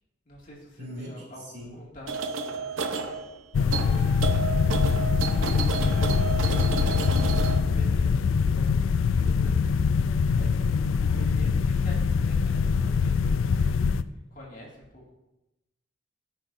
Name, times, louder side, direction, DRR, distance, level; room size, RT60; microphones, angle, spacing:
voice 1, 0.3-3.0 3.3-13.8 14.3-15.1, left 1 dB, 45° left, -3 dB, 2.1 m, -47 dB
voice 2, 0.8-1.2 1.5-1.8, equal, 55° right, -4 dB, 2.9 m, -39 dB
sound 1, 2.1-7.6, right 4 dB, 80° right, 0.7 m, -31 dB
sound 2, 3.5-14.0, left 5 dB, 80° left, 0.4 m, -23 dB
14.0 x 5.9 x 2.6 m, 0.96 s
head